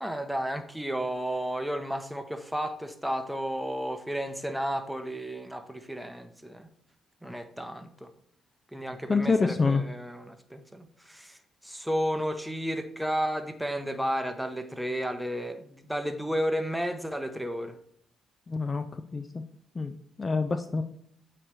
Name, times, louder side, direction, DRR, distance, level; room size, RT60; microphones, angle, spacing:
voice 1, 0.0-6.7 7.2-8.1 8.7-11.4 11.6-17.8, equal, 5° right, 7 dB, 0.9 m, -32 dB
voice 2, 9.1-9.8 18.5-18.9 19.1-19.4 19.7-20.8, left 4 dB, 35° left, 9 dB, 0.5 m, -26 dB
8.8 x 3.2 x 4.8 m, 0.68 s
supercardioid pair, 60°, 0 cm